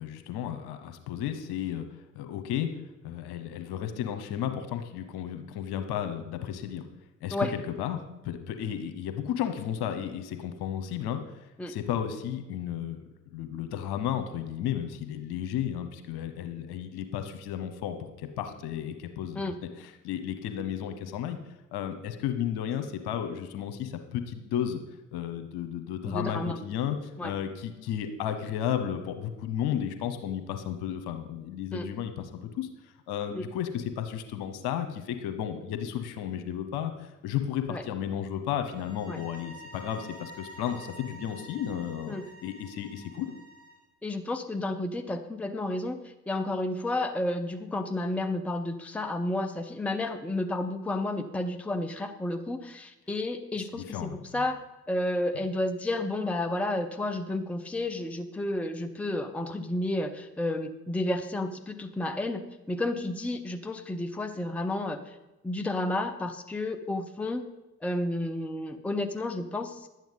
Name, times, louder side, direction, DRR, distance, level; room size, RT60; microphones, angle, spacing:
voice 1, 0.0-1.9 2.1-2.7 3.0-6.9 7.2-13.0 13.3-21.4 21.7-24.8 25.1-42.1 42.4-43.3 53.6-54.4, left 9 dB, 55° left, 8 dB, 1.3 m, -33 dB
voice 2, 26.1-26.6 27.2-27.3 31.7-31.9 33.3-33.4 37.7-37.8 39.1-39.2 42.1-42.2 44.0-54.6 54.9-65.2 65.4-67.5 67.8-69.9, left 1 dB, 5° left, 7 dB, 0.8 m, -31 dB
sound 1, 38.7-43.9, right 1 dB, 30° right, 1.9 m, -48 dB
11.5 x 9.2 x 5.3 m, 1.0 s
figure-of-eight pair, 50°, 47 cm